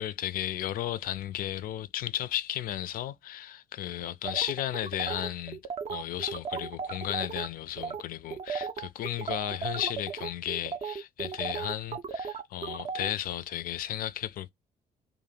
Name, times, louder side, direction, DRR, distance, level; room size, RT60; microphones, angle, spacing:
voice 1, 0.0-5.6 5.9-14.5, left 12 dB, 45° left, 0.4 m, -34 dB
sound 1, 4.2-7.5 7.8-8.0 8.3-13.1, right 6 dB, 30° right, 0.5 m, -35 dB
2.5 x 2.0 x 3.8 m
figure-of-eight pair, 45°, 20 cm